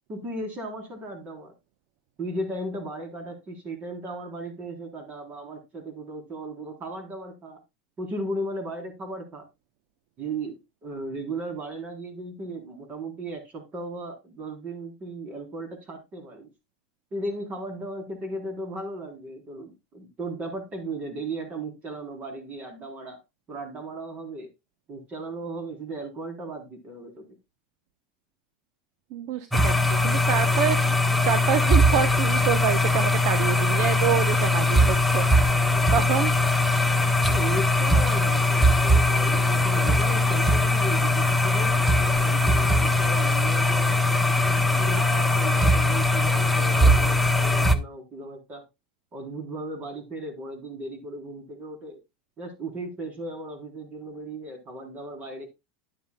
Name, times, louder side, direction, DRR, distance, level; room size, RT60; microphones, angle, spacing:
voice 1, 0.1-1.5 2.2-7.6 8.0-9.5 10.2-16.5 17.1-23.2 23.5-24.5 24.9-27.3 37.3-44.2 44.8-48.6 49.1-52.0 52.4-55.5, right 2 dB, 35° right, 3.8 m, -36 dB
voice 2, 29.1-35.3 35.9-36.3, right 10 dB, 55° right, 0.9 m, -27 dB
sound 1, 29.5-47.8, left 1 dB, ahead, 1.0 m, -21 dB
11.0 x 9.5 x 2.3 m
hypercardioid pair, 110°, 5 cm